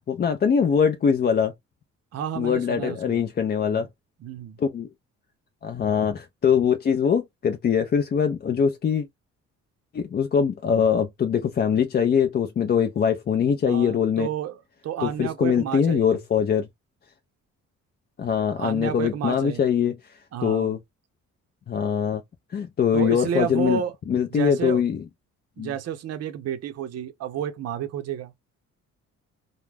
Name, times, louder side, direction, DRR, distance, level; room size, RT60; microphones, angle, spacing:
voice 1, 0.1-1.5 2.3-3.9 4.6-4.9 5.6-9.1 9.9-14.3 15.0-16.7 18.2-20.8 21.7-22.2 22.5-23.8 24.1-25.0 25.6-25.7, left 7 dB, 35° left, 0.4 m, -22 dB
voice 2, 2.1-3.2 3.7-3.9 4.2-4.6 13.7-16.2 18.6-19.6 20.3-20.7 22.9-23.9 24.3-24.8 25.6-28.3, right 9 dB, 55° right, 0.6 m, -31 dB
2.3 x 2.0 x 3.2 m
cardioid pair, 90°, 30 cm